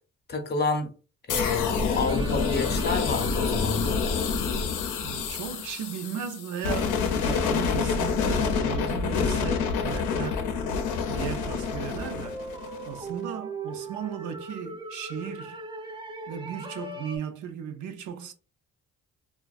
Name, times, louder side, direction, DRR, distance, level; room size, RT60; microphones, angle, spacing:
voice 1, 0.3-0.9 1.3-4.0, left 4 dB, 35° left, 0.6 m, -29 dB
sound 1, 1.3-13.1, left 5 dB, 85° left, 0.5 m, -27 dB
sound 2, 1.9-5.4 7.1-7.2 7.8-17.2, right 3 dB, 15° right, 0.3 m, -41 dB
voice 2, 5.0-10.4 11.1-12.4 12.9-15.6 16.3-18.3, right 8 dB, 75° right, 0.5 m, -36 dB
2.4 x 2.2 x 2.3 m
cardioid pair, 90°, 30 cm